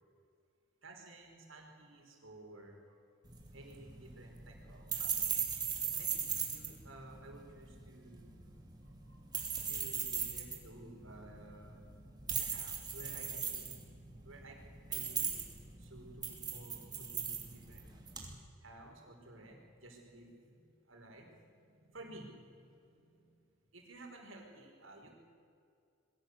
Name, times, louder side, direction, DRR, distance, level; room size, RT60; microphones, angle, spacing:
voice 1, 0.8-2.8 3.5-5.3 6.0-6.2 6.5-8.3 9.1-11.9 12.3-13.7 14.2-14.5 14.9-15.3 15.8-17.9 18.6-20.3 20.9-21.3 21.9-22.3 22.5-22.7 23.7-25.1, right 2 dB, 75° right, 1 dB, 4.9 m, -54 dB
sound 1, 3.2-18.3, right 6 dB, 20° right, 2.8 m, -39 dB
22.5 x 16.5 x 8.3 m, 2.4 s
head